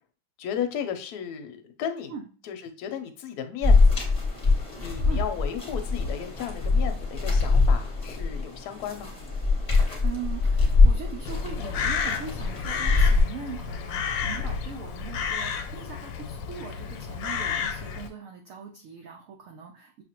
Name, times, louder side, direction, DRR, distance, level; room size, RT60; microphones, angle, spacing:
voice 1, 0.4-2.1 2.4-4.0 4.8-9.1, left 8 dB, 70° left, 6 dB, 1.1 m, -34 dB
sound 1, 3.6-13.2, left 3 dB, 25° left, 0.9 m, -23 dB
voice 2, 10.0-20.0, right 6 dB, 75° right, 2 dB, 0.7 m, -40 dB
Crow, 11.3-18.1, left 6 dB, 90° left, 1.3 m, -31 dB
6.0 x 2.4 x 2.9 m, 0.39 s
omnidirectional pair, 2.0 m